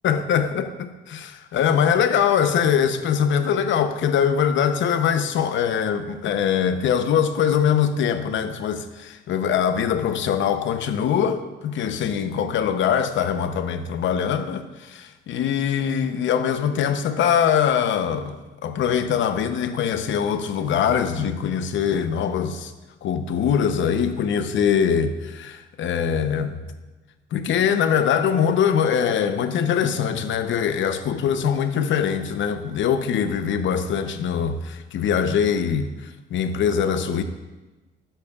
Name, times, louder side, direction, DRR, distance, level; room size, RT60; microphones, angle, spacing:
voice 1, 0.0-22.7 23.0-26.6 27.3-35.9 36.3-37.2, left 8 dB, 75° left, 0.7 m, -22 dB
12.0 x 10.0 x 2.4 m
cardioid pair, 90°, 20 cm